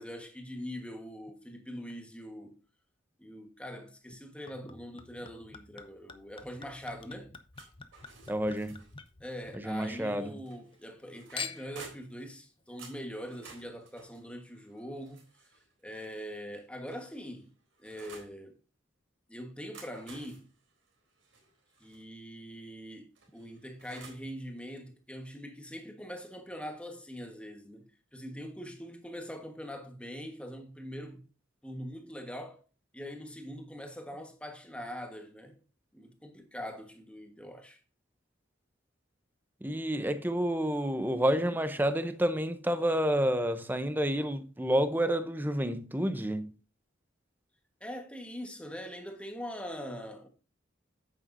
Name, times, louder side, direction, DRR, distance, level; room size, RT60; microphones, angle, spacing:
voice 1, 0.0-2.6 3.2-7.3 9.2-15.5 15.8-17.5 17.8-18.6 19.3-20.5 21.8-31.2 31.6-32.6 32.9-35.6 35.9-37.8 47.8-50.3, equal, 5° left, 1.3 m, -43 dB
Chink clink / Liquid, 4.5-10.0 10.3-11.0 11.4-11.9 12.6-12.7, left 5 dB, 25° left, 0.8 m, -46 dB
sound 1, 7.5-9.1 10.5-12.2 12.8-15.7 16.5-18.4 19.5-22.0 23.2-24.3, right 4 dB, 75° right, 3.7 m, -54 dB
voice 2, 8.3-8.8 9.6-10.3 39.6-46.5, equal, 10° right, 0.7 m, -29 dB
9.4 x 8.7 x 2.6 m
head